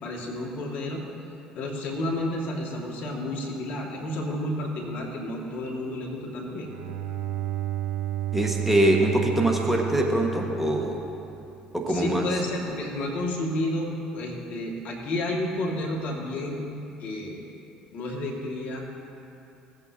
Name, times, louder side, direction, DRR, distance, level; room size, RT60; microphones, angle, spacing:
voice 1, 0.0-1.0 1.5-6.7 11.9-16.6 17.0-17.4 17.9-18.8, left 1 dB, 60° left, -2 dB, 2.1 m, -31 dB
Bowed string instrument, 6.4-11.4, right 12 dB, 75° right, 0.6 m, -32 dB
voice 2, 8.3-11.0 11.7-12.3, right 1 dB, 5° right, 0 dB, 1.7 m, -23 dB
18.0 x 8.3 x 2.9 m, 2.8 s
hypercardioid pair, 60°, 3 cm